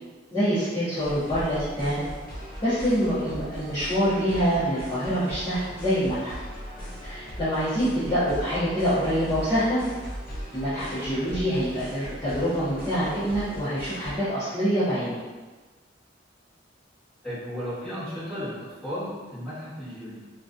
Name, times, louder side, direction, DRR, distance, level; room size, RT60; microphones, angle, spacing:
voice 1, 0.3-2.0 2.6-6.3 7.0-9.8 10.5-15.2, equal, 20° left, -17 dB, 1.0 m, -25 dB
sound 1, 1.0-14.1, equal, 50° left, 0.7 m, -39 dB
voice 2, 17.2-20.2, equal, 5° left, -15 dB, 1.4 m, -34 dB
2.9 x 2.4 x 2.5 m, 1.3 s
head